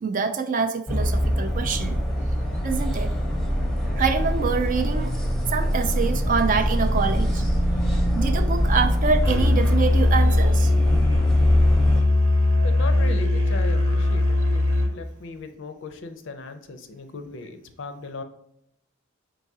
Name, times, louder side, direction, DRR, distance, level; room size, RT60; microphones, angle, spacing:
voice 1, 0.0-2.0 2.6-3.1 4.0-5.1 5.5-7.4 8.1-10.7, right 5 dB, 35° right, 8 dB, 0.3 m, -25 dB
sound 1, 0.9-12.0, equal, ahead, 0.7 m, -24 dB
Musical instrument, 9.2-14.9, left 2 dB, 70° right, 0.9 m, -20 dB
voice 2, 12.6-18.2, left 3 dB, 60° left, 8 dB, 0.5 m, -37 dB
4.6 x 3.9 x 2.7 m, 0.75 s
head